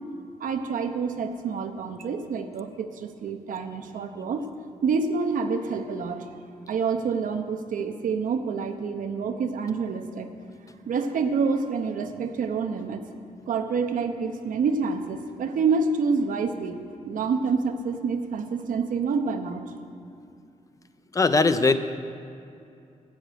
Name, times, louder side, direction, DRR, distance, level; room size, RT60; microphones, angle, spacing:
voice 1, 0.4-4.4 4.8-6.2 6.7-10.3 10.9-13.0 13.5-16.8 17.0-19.6, right 5 dB, 80° right, 6 dB, 1.0 m, -27 dB
voice 2, 21.1-21.8, left 3 dB, 25° left, 11 dB, 0.5 m, -19 dB
12.5 x 8.2 x 9.1 m, 2.5 s
wide cardioid pair, 170°, 14 cm